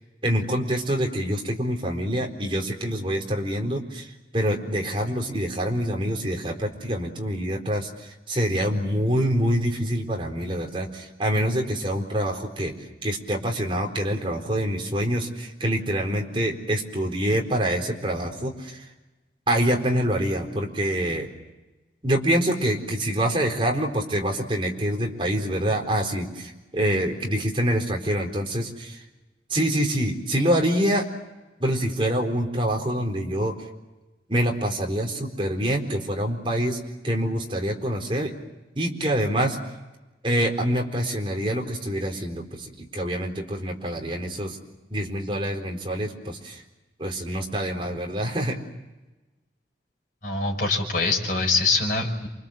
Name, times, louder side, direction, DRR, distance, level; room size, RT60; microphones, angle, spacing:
voice 1, 0.2-12.7 13.0-18.8 19.5-21.3 22.0-29.0 29.5-31.1 31.6-33.5 34.3-36.8 37.0-38.3 38.8-39.6 40.2-44.6 44.9-46.6 47.0-48.6, equal, 30° right, 1 dB, 4.2 m, -26 dB
voice 2, 50.2-52.3, left 3 dB, 50° left, 0 dB, 5.9 m, -24 dB
28.5 x 25.0 x 7.5 m, 1.1 s
head